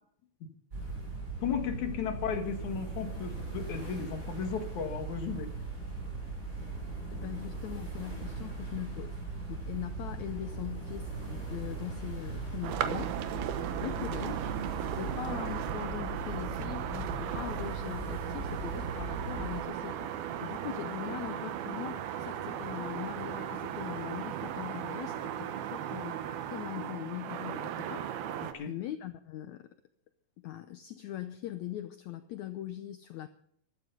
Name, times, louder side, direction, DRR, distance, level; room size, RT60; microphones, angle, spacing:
sound 1, 0.7-19.6, right 3 dB, 20° right, 6.6 m, -39 dB
voice 1, 1.4-5.5 15.0-15.1 28.4-28.7, left 7 dB, 60° left, 6 dB, 2.9 m, -35 dB
voice 2, 7.1-9.2 9.5-13.2 13.8-14.5 14.8-28.1 28.7-29.7 30.4-33.3, left 13 dB, 80° left, 10 dB, 1.6 m, -41 dB
sound 2, 12.6-28.5, right 10 dB, 85° right, 3.0 m, -37 dB
15.0 x 13.0 x 5.4 m, 0.67 s
omnidirectional pair, 4.2 m